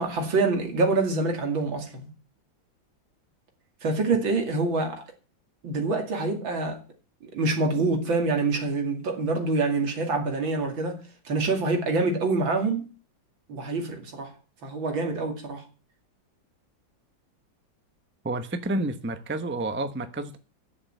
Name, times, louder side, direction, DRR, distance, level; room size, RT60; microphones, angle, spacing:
voice 1, 0.0-2.1 3.8-5.0 5.6-6.8 7.3-12.9 13.5-14.3 14.6-15.6, right 3 dB, 90° right, 3.2 m, -26 dB
voice 2, 18.2-20.4, right 2 dB, 10° right, 0.5 m, -30 dB
9.9 x 7.1 x 8.0 m
omnidirectional pair, 2.1 m